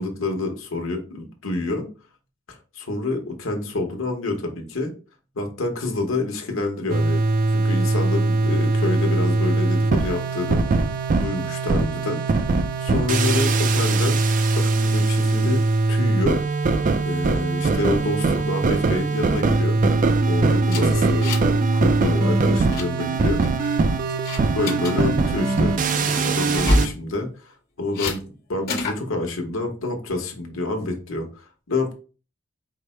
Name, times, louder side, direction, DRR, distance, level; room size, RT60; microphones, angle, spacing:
voice 1, 0.0-1.9 2.5-4.9 5.3-10.6 11.2-12.2 12.8-14.2 14.6-16.4 17.0-19.8 20.3-23.6 24.6-28.2 28.5-31.9, left 2 dB, 80° left, 3 dB, 1.1 m, -28 dB
sound 1, 6.9-26.9, right 3 dB, 40° right, 0.4 m, -21 dB
sound 2, 20.7-21.6 21.9-22.1 22.4-22.9 23.4-23.8 24.3-24.9 26.5-27.0 27.9-28.2 28.7-29.0, left 1 dB, 50° left, 1.2 m, -25 dB
4.8 x 2.1 x 4.3 m, 0.35 s
head